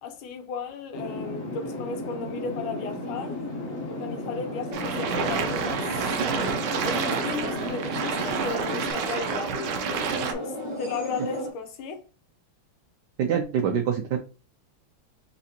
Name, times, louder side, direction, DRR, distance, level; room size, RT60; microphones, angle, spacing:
voice 1, 0.0-3.4 3.9-6.2 6.8-9.9 10.3-12.0, left 5 dB, 75° left, 1.6 m, -35 dB
sound 1, 0.9-8.9, left 1 dB, 45° left, 1.2 m, -34 dB
sound 2, 2.6-11.5, left 1 dB, 20° left, 0.8 m, -40 dB
sound 3, 4.7-10.3, right 6 dB, 65° right, 1.1 m, -29 dB
voice 2, 13.2-14.2, right 8 dB, 85° right, 0.9 m, -25 dB
4.1 x 3.7 x 2.8 m
omnidirectional pair, 2.4 m